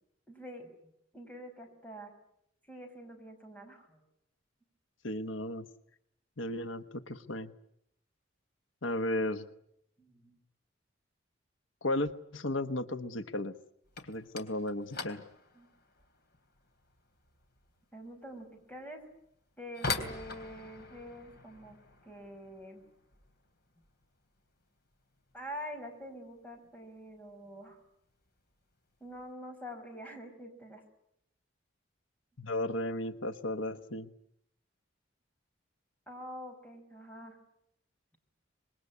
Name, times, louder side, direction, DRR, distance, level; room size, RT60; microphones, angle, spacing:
voice 1, 0.3-0.7 1.1-2.1 2.7-4.0 10.0-10.4 15.5-15.7 17.9-19.0 19.6-21.8 22.0-22.8 25.3-27.8 29.0-30.8 36.1-37.4, equal, 10° left, 3 dB, 5.5 m, -46 dB
voice 2, 5.0-5.7 6.4-7.5 8.8-9.5 11.8-13.5 14.0-15.2 32.4-34.1, left 1 dB, 90° left, 10 dB, 1.2 m, -34 dB
sound 1, 13.8-24.6 24.9-25.5 25.7-26.1 26.4-26.5 27.2-27.3 28.2-28.4 28.7-29.2, left 4 dB, 55° left, 3.3 m, -44 dB
26.5 x 21.5 x 9.7 m, 0.77 s
head